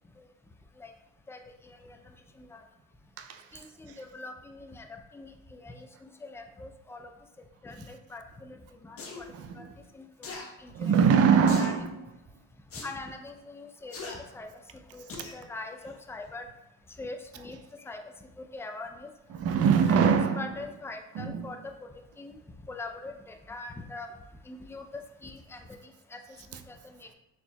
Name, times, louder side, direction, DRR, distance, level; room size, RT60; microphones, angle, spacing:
voice 1, 1.3-2.6 3.5-7.1 7.6-9.7 9.9-10.9 11.6-11.7 12.8-16.5 16.9-19.1 19.9-20.0 20.4-24.1 24.4-26.2 26.5-27.1, left 2 dB, 10° left, 0.4 m, -43 dB
sound 1, 9.0-9.2 10.2-10.5 11.5-11.8 12.7-12.9 13.9-14.2 15.1-15.4 15.8-15.9, left 4 dB, 50° left, 0.9 m, -40 dB
voice 2, 9.3-9.7 10.7-12.0 19.3-20.5 21.1-21.5, right 6 dB, 50° right, 0.4 m, -23 dB
4.3 x 3.6 x 2.2 m
cardioid pair, 90°, 30 cm